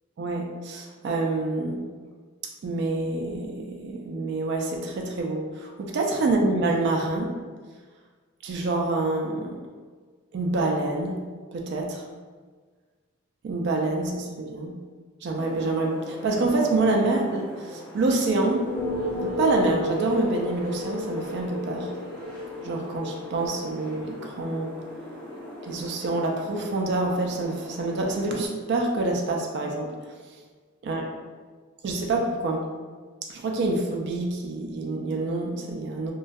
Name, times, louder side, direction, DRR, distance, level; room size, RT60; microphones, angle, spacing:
voice 1, 0.2-1.8 2.6-7.3 8.4-9.6 10.3-11.2 11.5-12.0 13.4-14.7 15.2-18.7 19.1-21.9 22.6-24.7 25.6-29.9 30.8-31.0 31.8-32.6 33.3-36.1, right 2 dB, 55° right, 1 dB, 0.3 m, -27 dB
sound 1, 15.3-28.5, left 1 dB, 5° left, 0.6 m, -35 dB
2.2 x 2.2 x 2.5 m, 1.5 s
head